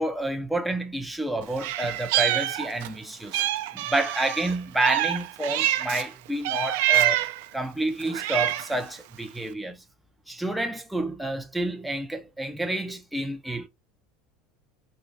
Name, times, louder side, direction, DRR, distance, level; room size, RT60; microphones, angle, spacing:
voice 1, 0.0-3.4 3.7-7.2 7.5-9.8 10.3-13.7, right 1 dB, ahead, 0.3 m, -29 dB
Meow, 1.6-3.0 3.3-6.1 6.4-7.4 8.0-8.8, right 14 dB, 75° right, 0.4 m, -26 dB
3.1 x 3.0 x 2.6 m
cardioid pair, 165°, 0 cm